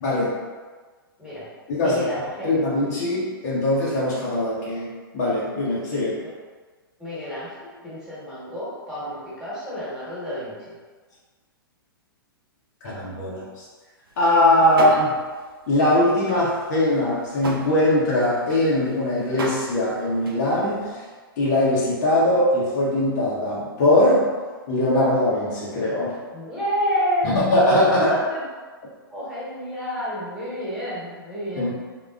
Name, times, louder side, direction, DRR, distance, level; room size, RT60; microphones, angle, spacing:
voice 1, 0.0-0.4 1.7-2.0 2.4-6.2 12.8-13.5 14.2-15.1 15.7-21.0 21.4-24.3 24.7-26.2 27.2-28.1 31.6-31.7, left 1 dB, 45° left, -6 dB, 1.0 m, -21 dB
voice 2, 1.8-2.5 6.2-6.3 7.0-7.5 7.8-10.7 14.9-15.0 26.3-27.4 27.8-28.4 29.1-31.7, equal, 5° right, -10 dB, 1.5 m, -29 dB
sound 1, 14.1-14.3 14.6-15.5 15.7-15.9 16.2-20.9, right 1 dB, 65° right, 0.5 m, -34 dB
3.8 x 2.9 x 2.4 m, 1.4 s
figure-of-eight pair, 110°, 12 cm